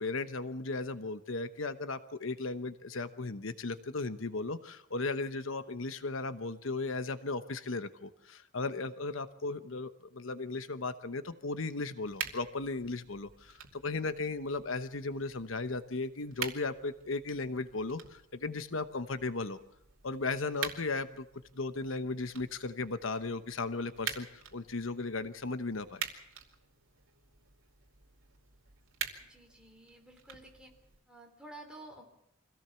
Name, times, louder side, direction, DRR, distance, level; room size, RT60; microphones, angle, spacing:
voice 1, 0.0-19.6 20.0-21.3 21.5-26.0, left 3 dB, 75° left, 11 dB, 1.0 m, -36 dB
sound 1, 12.0-31.0, right 7 dB, 80° right, 2.7 m, -46 dB
voice 2, 29.2-30.7 31.1-32.0, right 1 dB, 5° right, 1 dB, 3.8 m, -51 dB
25.0 x 17.0 x 7.0 m, 0.78 s
head